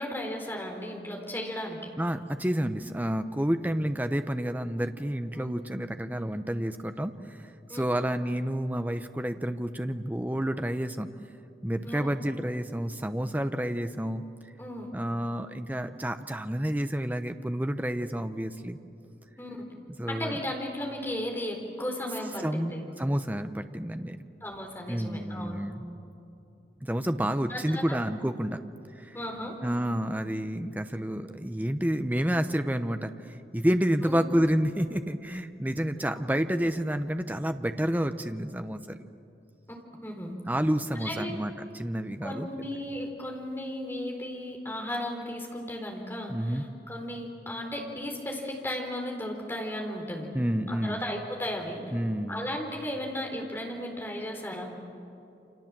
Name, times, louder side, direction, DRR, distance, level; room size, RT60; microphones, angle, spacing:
voice 1, 0.0-1.8 5.3-5.5 7.7-7.8 11.8-12.2 14.6-14.9 19.4-19.6 20.1-22.8 24.4-25.6 27.5-28.0 29.1-29.9 34.0-34.2 40.0-40.3 40.9-41.3 42.2-50.3 50.7-51.8 52.3-54.7, left 1 dB, 10° left, 0 dB, 4.1 m, -35 dB
voice 2, 2.0-7.4 7.7-11.1 11.6-14.2 14.9-18.8 20.0-20.4 22.4-24.2 24.9-25.8 26.8-28.6 29.0-29.2 29.6-39.1 40.5-42.5 46.3-46.6 50.3-51.0 51.9-52.4, equal, 10° right, 8 dB, 0.8 m, -29 dB
29.0 x 26.5 x 7.5 m, 2.8 s
head